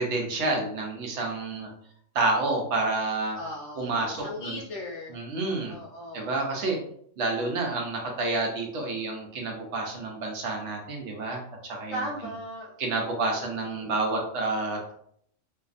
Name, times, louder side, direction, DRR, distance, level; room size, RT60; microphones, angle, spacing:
voice 1, 0.0-1.7 2.1-3.4 3.8-4.6 5.1-5.8 6.1-6.8 7.2-12.0 12.8-14.9, right 2 dB, 65° right, 0 dB, 0.9 m, -29 dB
voice 2, 3.3-5.2 5.7-6.3 11.9-12.8 13.4-13.9, left 1 dB, 70° left, -6 dB, 1.0 m, -37 dB
2.6 x 2.4 x 2.4 m, 0.65 s
omnidirectional pair, 1.3 m